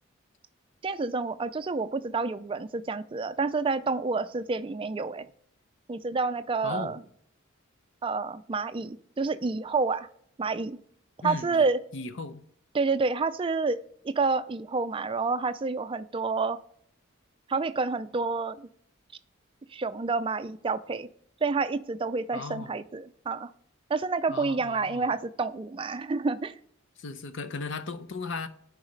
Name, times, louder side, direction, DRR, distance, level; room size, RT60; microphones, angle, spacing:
voice 1, 0.8-5.3 5.9-7.0 8.0-10.1 10.4-10.8 11.2-11.8 12.7-13.8 14.0-16.6 17.5-18.7 19.7-21.1 21.4-23.5 23.9-26.5, right 4 dB, 25° right, 0.3 m, -29 dB
voice 2, 6.6-7.0 11.2-11.7 11.9-12.4 22.3-22.8 24.3-25.1 27.0-28.5, left 4 dB, 60° left, 0.6 m, -36 dB
10.5 x 4.8 x 3.2 m
head